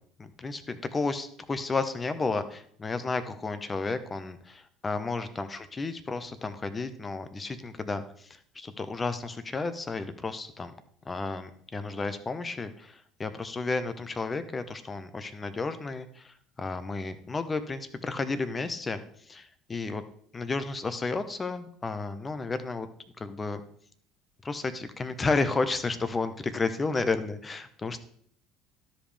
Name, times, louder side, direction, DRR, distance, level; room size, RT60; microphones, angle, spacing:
voice 1, 0.2-10.7 11.0-19.0 19.3-20.0 20.3-22.9 23.2-23.6 24.4-28.0, left 3 dB, 25° left, 11 dB, 1.0 m, -32 dB
12.5 x 5.2 x 3.5 m, 0.62 s
hypercardioid pair, 65°, 0 cm